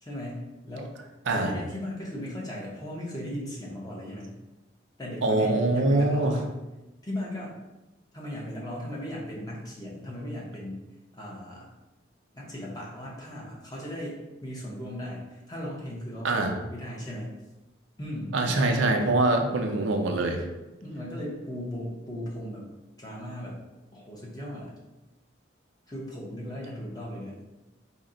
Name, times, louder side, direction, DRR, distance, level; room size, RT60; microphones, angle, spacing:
voice 1, 0.0-0.9 1.3-4.3 5.0-6.5 7.0-7.5 8.1-10.8 11.1-11.7 12.3-17.3 18.0-18.7 20.8-22.7 23.0-23.6 23.9-24.7 25.9-27.3, left 1 dB, 20° left, -4 dB, 0.8 m, -37 dB
voice 2, 5.2-6.4 16.2-16.5 18.3-20.4, right 2 dB, 80° right, 3 dB, 0.5 m, -24 dB
4.1 x 2.1 x 3.7 m, 1.0 s
head